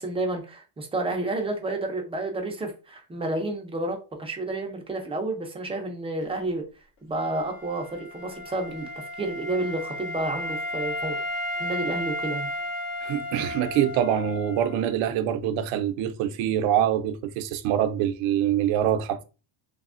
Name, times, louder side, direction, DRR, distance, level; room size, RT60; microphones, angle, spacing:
voice 1, 0.0-6.6 7.0-8.9 9.2-12.5, right 2 dB, 15° right, 0.4 m, -30 dB
Wind instrument woodwind instrument, 7.1-14.9, left 1 dB, 75° left, 1.4 m, -34 dB
voice 2, 13.0-19.2, right 10 dB, 75° right, 0.5 m, -25 dB
3.3 x 2.0 x 2.4 m
cardioid pair, 140°, 47 cm